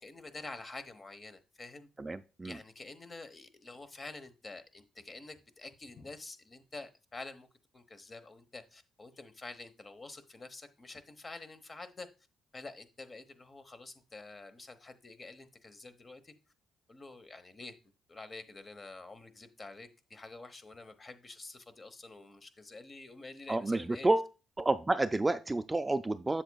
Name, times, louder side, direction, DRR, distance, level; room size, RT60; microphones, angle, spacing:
voice 1, 0.0-1.9 2.4-7.5 7.7-12.1 12.5-16.3 16.9-17.7 18.1-24.1, left 3 dB, 30° left, 11 dB, 1.1 m, -48 dB
voice 2, 2.0-2.6 23.5-24.3 24.6-26.4, right 2 dB, 15° right, 10 dB, 0.4 m, -30 dB
7.7 x 7.2 x 2.3 m, 0.30 s
cardioid pair, 90°, 0 cm